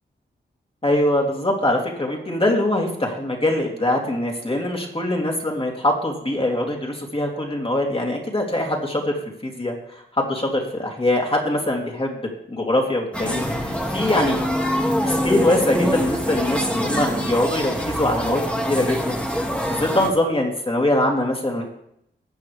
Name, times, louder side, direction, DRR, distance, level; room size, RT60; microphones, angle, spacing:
voice 1, 0.8-9.1 9.4-9.7 10.2-12.2 12.5-14.6 15.0-18.4 18.7-19.4 19.7-21.6, left 1 dB, 30° left, 0 dB, 3.0 m, -23 dB
sound 1, 13.1-20.1, equal, 5° left, 1.9 m, -24 dB
20.0 x 8.6 x 3.4 m, 0.77 s
wide cardioid pair, 100°, 20 cm